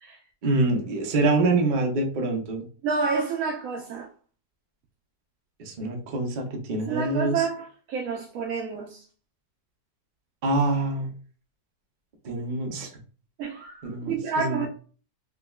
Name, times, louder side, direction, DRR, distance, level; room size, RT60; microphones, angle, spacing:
voice 1, 0.4-2.6 5.6-7.5 10.4-11.1 12.2-12.9 13.8-14.1 14.4-14.7, right 2 dB, 40° right, 0.7 m, -25 dB
voice 2, 2.8-4.1 6.9-9.1 13.4-14.7, right 5 dB, 70° right, 0.9 m, -29 dB
4.8 x 2.2 x 2.3 m
omnidirectional pair, 1.7 m